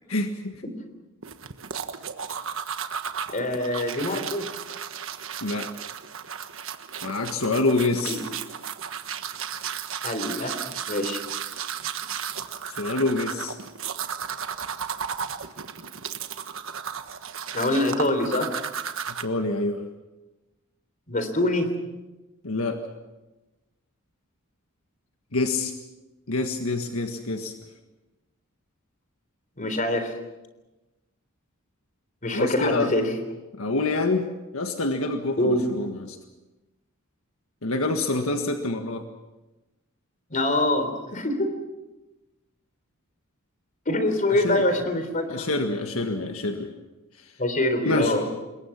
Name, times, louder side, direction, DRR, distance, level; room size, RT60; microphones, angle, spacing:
voice 1, 0.1-0.5 5.4-5.7 7.0-8.2 12.7-13.6 19.1-19.8 22.4-22.8 25.3-25.7 26.3-27.5 32.3-32.9 33.6-36.2 37.6-39.1 44.3-44.6 45.3-46.7 47.9-48.2, left 2 dB, 75° left, 5 dB, 1.7 m, -26 dB
sound 1, 1.2-19.2, right 7 dB, 65° right, 1.4 m, -34 dB
voice 2, 3.3-4.5 8.0-8.2 10.0-10.6 10.9-11.2 17.5-18.5 21.1-21.7 29.6-30.1 32.2-33.1 35.4-35.6 40.3-41.5 43.9-45.5 47.4-48.2, left 1 dB, 40° left, 8 dB, 3.6 m, -24 dB
28.0 x 22.0 x 5.9 m, 1.1 s
head